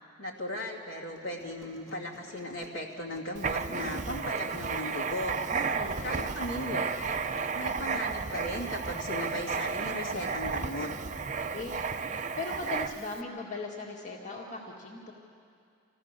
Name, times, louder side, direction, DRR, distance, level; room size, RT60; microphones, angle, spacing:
voice 1, 0.2-5.4 6.0-7.1 7.5-10.9, left 1 dB, 75° left, -2 dB, 2.6 m, -37 dB
sound 1, 1.2-9.1, left 1 dB, 15° left, 1.9 m, -56 dB
Writing, 3.4-13.2, right 5 dB, 35° right, 0.6 m, -33 dB
voice 2, 5.5-6.3 11.2-11.7 12.4-15.1, left 3 dB, 35° left, -2 dB, 2.1 m, -39 dB
27.0 x 15.0 x 6.7 m, 2.4 s
head